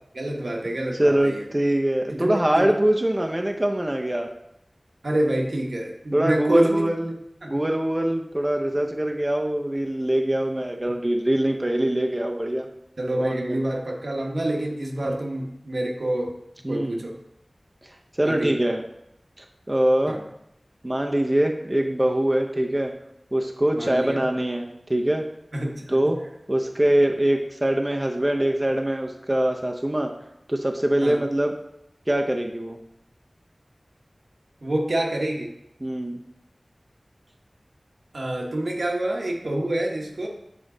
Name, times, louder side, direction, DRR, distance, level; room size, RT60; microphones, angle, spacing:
voice 1, 0.1-1.5 2.1-2.7 5.0-6.8 7.4-7.5 13.0-16.4 16.7-17.2 18.2-18.5 20.1-20.2 23.7-24.3 25.5-26.0 31.0-31.2 34.6-35.5 38.1-40.3, right 1 dB, 85° right, 0 dB, 1.0 m, -27 dB
voice 2, 1.0-4.3 6.1-7.2 7.5-12.7 13.2-13.6 15.0-15.2 16.6-17.0 18.1-18.8 19.4-20.2 20.8-22.9 23.3-25.2 25.9-26.2 26.5-30.1 30.5-31.5 32.1-32.8 35.8-36.2, right 1 dB, 25° right, 2 dB, 0.6 m, -23 dB
7.2 x 3.8 x 3.8 m, 0.79 s
wide cardioid pair, 55°, 0 cm